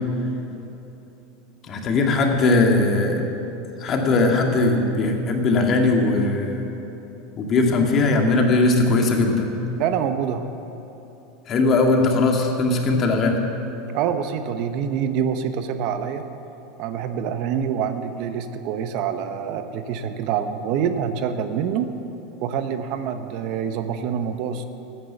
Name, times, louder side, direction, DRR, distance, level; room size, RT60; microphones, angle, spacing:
voice 1, 1.6-3.2 3.8-6.7 7.4-9.5 11.5-13.4, left 3 dB, 40° left, 2 dB, 2.0 m, -19 dB
voice 2, 9.8-10.5 13.9-16.2 16.8-21.9 22.4-24.6, right 8 dB, 60° right, 9 dB, 0.8 m, -26 dB
13.5 x 9.1 x 7.0 m, 3.0 s
hypercardioid pair, 100°, 0 cm